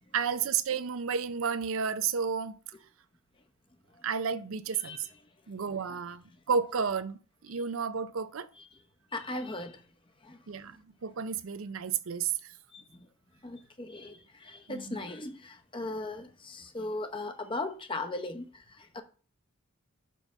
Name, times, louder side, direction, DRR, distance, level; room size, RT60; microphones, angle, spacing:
voice 1, 0.1-2.6 4.0-5.1 5.5-8.5 10.5-12.3 14.7-15.0, right 6 dB, 70° right, 0.5 m, -32 dB
voice 2, 9.1-9.8 10.2-10.4 12.7-12.8 13.4-19.0, left 2 dB, 25° left, 0.8 m, -38 dB
5.6 x 5.4 x 6.1 m
head